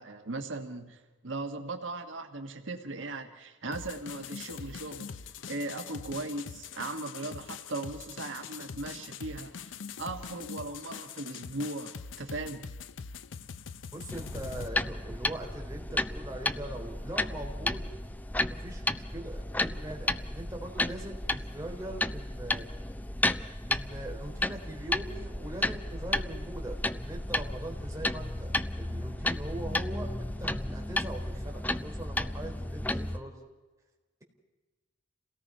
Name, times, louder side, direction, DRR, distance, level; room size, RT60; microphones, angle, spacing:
voice 1, 0.0-5.1 5.5-12.7, right 2 dB, 90° right, 5 dB, 1.6 m, -38 dB
sound 1, 3.7-14.7, left 6 dB, 85° left, 0.7 m, -43 dB
voice 2, 13.9-17.9 18.5-22.7 23.6-33.4, right 1 dB, 15° right, -1 dB, 4.1 m, -41 dB
sound 2, 14.1-33.2, left 1 dB, 10° left, 0.6 m, -33 dB
28.5 x 17.5 x 5.5 m, 1.2 s
head